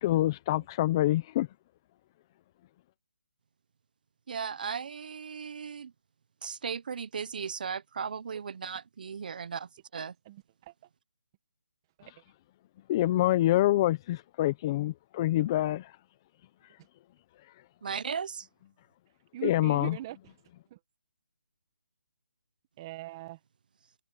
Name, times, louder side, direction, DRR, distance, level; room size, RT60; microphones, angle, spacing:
voice 1, 0.0-1.5 12.9-16.0 16.6-16.8 17.4-17.5 19.4-20.0, left 15 dB, 20° left, 0.9 m, -26 dB
voice 2, 4.3-5.9 6.4-10.1 17.8-18.5, right 6 dB, 45° right, 1.1 m, -36 dB
voice 3, 10.2-10.7 12.0-12.1 19.3-20.3 20.7-20.8 22.8-23.4, right 15 dB, 20° right, 1.7 m, -41 dB
hypercardioid pair, 170°, 6 cm